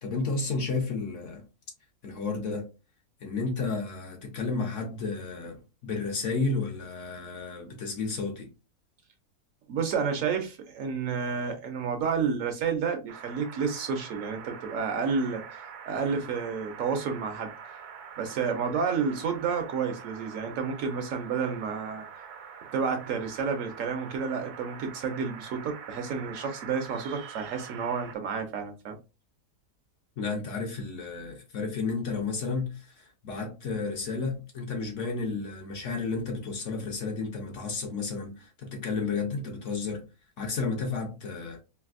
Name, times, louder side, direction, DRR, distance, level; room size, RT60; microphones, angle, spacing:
voice 1, 0.0-1.5 2.0-2.7 3.2-8.5 30.2-40.1 40.4-41.6, left 4 dB, 60° left, 0.9 m, -32 dB
voice 2, 9.7-17.5 18.2-22.0 22.7-28.9, right 5 dB, 65° right, 0.9 m, -30 dB
sound 1, 13.1-28.2, right 7 dB, 85° right, 1.2 m, -45 dB
3.3 x 2.5 x 2.4 m
omnidirectional pair, 1.6 m